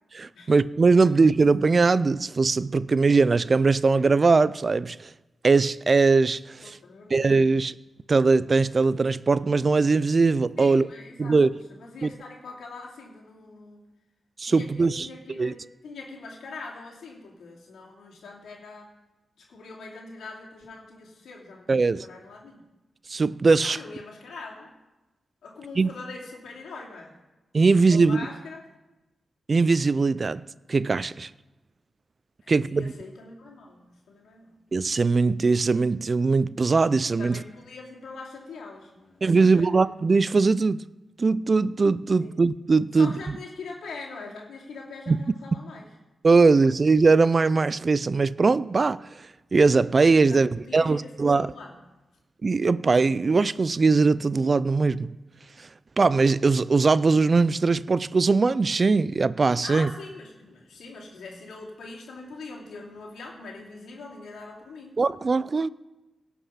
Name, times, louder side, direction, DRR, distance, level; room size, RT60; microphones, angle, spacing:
voice 1, 0.1-5.1 5.4-6.8 7.1-7.8 8.1-10.9 11.2-11.5 12.0-12.1 14.4-15.1 15.4-15.5 21.7-22.1 23.1-23.8 25.8-25.9 27.5-28.3 29.5-30.4 30.7-31.3 32.5-32.9 34.7-37.4 39.2-40.8 41.2-43.1 45.1-45.2 46.2-49.0 49.5-51.5 52.4-55.1 56.0-59.9 65.0-65.7, right 4 dB, 45° right, 0.4 m, -21 dB
voice 2, 6.6-7.2 10.6-13.8 14.5-18.9 19.4-22.7 23.6-24.7 25.4-27.2 27.7-28.6 32.4-34.5 37.2-39.7 42.2-42.4 42.9-45.9 50.2-51.1 51.4-51.8 59.6-65.0, left 3 dB, 90° left, 2.7 m, -42 dB
17.5 x 6.0 x 5.7 m
cardioid pair, 60°, 0 cm